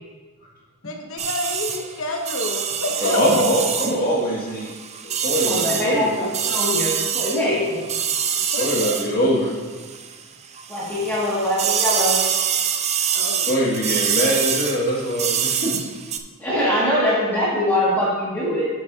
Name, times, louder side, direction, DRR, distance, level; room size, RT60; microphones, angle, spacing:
voice 1, 0.8-3.4 8.3-9.0 13.1-13.7, left 2 dB, 70° left, 2 dB, 0.8 m, -29 dB
sound 1, 1.2-10.2 10.5-16.2, right 8 dB, 30° right, 0.4 m, -25 dB
voice 2, 3.0-4.7 5.0-6.1 7.5-7.6 8.4-9.5 13.4-15.8, equal, 45° left, -4 dB, 1.9 m, -22 dB
voice 3, 5.4-7.8 10.7-12.2 16.4-18.7, left 1 dB, 10° left, -10 dB, 1.9 m, -22 dB
11.0 x 7.2 x 2.7 m, 1.4 s
head